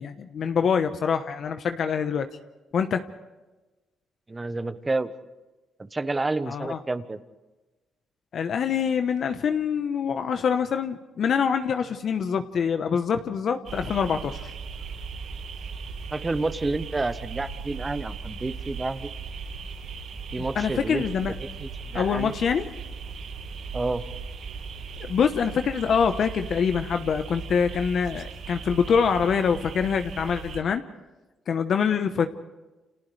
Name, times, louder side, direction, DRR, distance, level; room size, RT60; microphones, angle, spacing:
voice 1, 0.0-2.3 2.7-3.1 6.5-6.8 8.3-14.5 20.4-21.3 21.9-22.7 25.0-30.8 31.5-32.3, left 6 dB, 60° left, 7 dB, 1.1 m, -25 dB
voice 2, 4.3-5.1 5.8-7.2 16.1-19.1 20.3-21.0 21.4-22.3 23.7-24.0, right 3 dB, 20° right, 12 dB, 1.2 m, -29 dB
sound 1, 13.6-30.6, right 5 dB, 70° right, 7.3 m, -38 dB
30.0 x 27.5 x 3.4 m, 1.1 s
cardioid pair, 90°, 0 cm